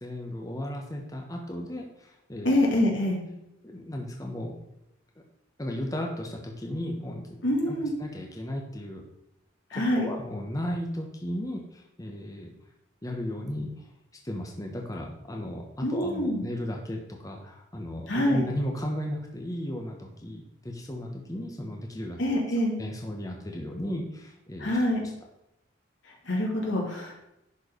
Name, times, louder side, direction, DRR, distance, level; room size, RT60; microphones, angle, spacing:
voice 1, 0.0-2.6 3.6-4.5 5.6-9.0 9.7-12.5 13.0-13.9 14.2-22.4 22.8-24.8, left 1 dB, 20° left, 1 dB, 1.1 m, -35 dB
voice 2, 2.4-3.2 7.4-7.9 9.7-10.0 15.8-16.5 18.1-18.4 22.2-22.8 24.6-25.0 26.2-27.2, left 1 dB, 80° left, -2 dB, 2.9 m, -25 dB
11.0 x 4.6 x 5.1 m, 0.85 s
head